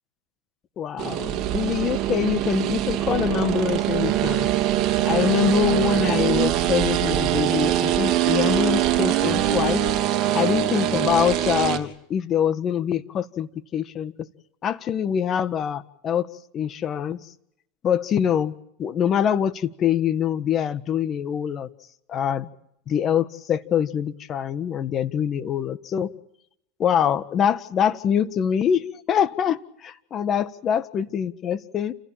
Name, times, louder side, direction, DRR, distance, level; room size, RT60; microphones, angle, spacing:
voice 1, 0.8-4.5 5.0-9.8 10.3-14.1 14.6-16.3 16.5-17.2 17.8-18.5 18.8-21.7 22.1-22.5 22.9-26.1 26.8-31.9, left 8 dB, 35° left, 13 dB, 1.6 m, -24 dB
sound 1, 1.0-11.8, right 12 dB, 45° right, 3.1 m, -23 dB
29.5 x 16.0 x 8.9 m, 0.76 s
hypercardioid pair, 110°, 0 cm